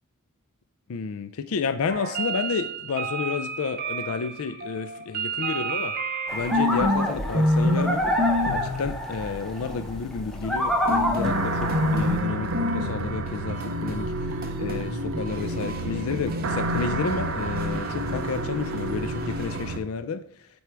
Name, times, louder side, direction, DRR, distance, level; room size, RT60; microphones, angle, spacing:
voice 1, 0.9-5.9 6.3-8.0 8.5-14.1 14.6-20.5, left 5 dB, 75° left, 11 dB, 0.4 m, -31 dB
sound 1, 1.9-7.1 7.3-7.9 8.2-8.9 10.9-19.8, equal, 45° right, 1.1 m, -29 dB
sound 2, 6.3-12.2, equal, 5° left, 0.8 m, -28 dB
sound 3, 11.2-19.8, right 1 dB, 65° right, 0.6 m, -29 dB
8.0 x 4.7 x 3.4 m, 0.64 s
head